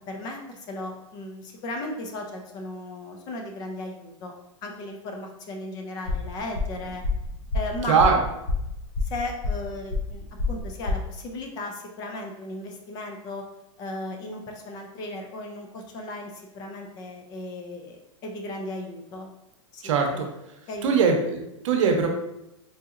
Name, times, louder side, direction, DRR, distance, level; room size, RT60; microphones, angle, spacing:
voice 1, 0.1-4.3 4.6-7.0 7.5-8.1 9.0-13.4 13.8-19.3 19.7-20.3 20.7-21.1, left 2 dB, 25° left, 2 dB, 0.4 m, -36 dB
sound 1, 6.0-11.0, left 3 dB, 55° left, 0.7 m, -29 dB
voice 2, 7.9-8.2 19.8-20.3 20.8-22.1, right 5 dB, 75° right, 3 dB, 0.7 m, -21 dB
3.9 x 2.7 x 2.4 m, 0.88 s
supercardioid pair, 155°, 16 cm